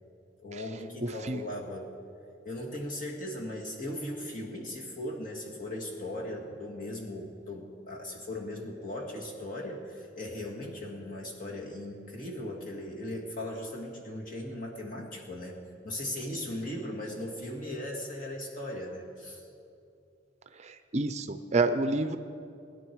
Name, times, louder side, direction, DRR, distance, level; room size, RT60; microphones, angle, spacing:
voice 1, 0.4-1.9 2.4-19.5, left 1 dB, 45° left, -1 dB, 2.1 m, -38 dB
voice 2, 1.0-1.4 20.6-22.2, right 3 dB, 35° right, 9 dB, 0.5 m, -29 dB
20.0 x 10.5 x 4.7 m, 2.6 s
head